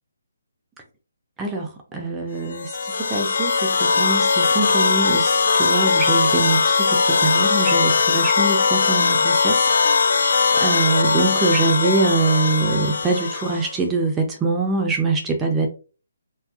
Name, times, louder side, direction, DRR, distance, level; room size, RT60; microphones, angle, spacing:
voice 1, 1.4-9.6 10.0-15.7, right 3 dB, 10° right, 0.3 m, -24 dB
sound 1, 2.5-13.8, left 4 dB, 65° left, 0.3 m, -19 dB
2.6 x 2.3 x 2.3 m
hypercardioid pair, 150°, 0 cm